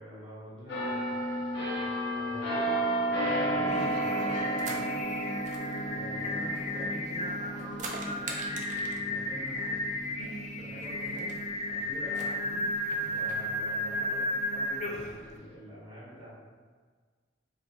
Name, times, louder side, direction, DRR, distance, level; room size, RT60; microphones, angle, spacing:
voice 1, 0.0-5.0 5.9-11.4 11.7-12.7 13.1-16.3, equal, 25° right, -10 dB, 1.4 m, -47 dB
sound 1, 0.7-12.2 12.7-12.9, right 1 dB, 60° left, 0.8 m, -33 dB
Singing, 3.5-15.2, left 1 dB, 35° left, 0.4 m, -34 dB
sound 2, 3.7-4.9 5.4-7.1 7.5-9.1 10.2-10.3 10.5-10.6 11.0-11.4 12.1-13.4, right 3 dB, 40° right, 0.4 m, -43 dB
2.9 x 2.3 x 4.1 m, 1.5 s
head